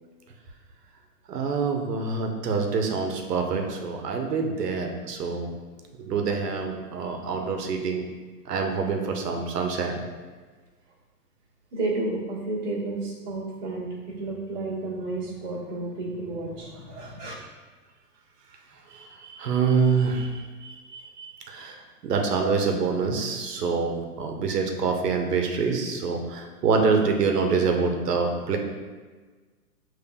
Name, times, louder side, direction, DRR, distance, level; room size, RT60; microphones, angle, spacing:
voice 1, 1.3-5.5 6.1-8.0 8.5-10.0 18.9-21.8 22.0-28.6, right 5 dB, 75° right, 3 dB, 0.9 m, -26 dB
voice 2, 11.7-17.3, right 2 dB, 30° right, -9 dB, 1.4 m, -32 dB
6.9 x 3.2 x 2.3 m, 1.4 s
hypercardioid pair, 160°, 48 cm